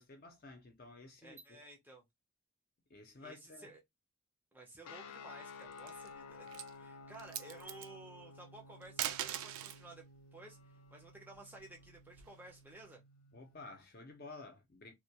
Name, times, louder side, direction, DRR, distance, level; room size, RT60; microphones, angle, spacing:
voice 1, 0.0-1.6 2.9-3.8 13.3-14.9, left 3 dB, 40° left, 0.5 m, -53 dB
voice 2, 1.2-2.0 3.2-3.8 4.5-10.0 10.3-10.6 10.9-13.0, right 2 dB, 10° right, 0.4 m, -54 dB
sound 1, 4.8-13.8, left 4 dB, 90° left, 0.4 m, -54 dB
sound 2, 5.6-6.1 6.5-6.7 7.1-7.9 8.8-9.8 11.3-12.5, right 11 dB, 70° right, 0.3 m, -41 dB
2.2 x 2.1 x 2.7 m
head